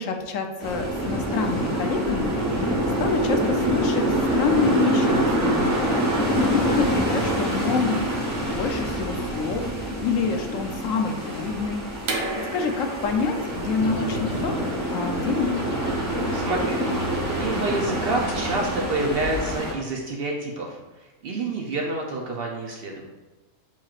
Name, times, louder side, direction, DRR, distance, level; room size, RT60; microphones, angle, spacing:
voice 1, 0.0-4.0 4.3-6.0 6.4-8.1 8.4-11.8 12.5-14.5 14.9-15.6, left 4 dB, 75° left, 4 dB, 1.0 m, -27 dB
sound 1, 0.6-19.7, equal, 15° right, 1.0 m, -26 dB
sound 2, 12.0-17.6, right 2 dB, 85° right, 1.2 m, -36 dB
sound 3, 13.8-19.6, left 1 dB, 55° left, 0.7 m, -35 dB
voice 2, 16.3-23.1, right 2 dB, 60° right, 0 dB, 0.7 m, -28 dB
7.2 x 3.0 x 2.4 m, 1.2 s
omnidirectional pair, 1.4 m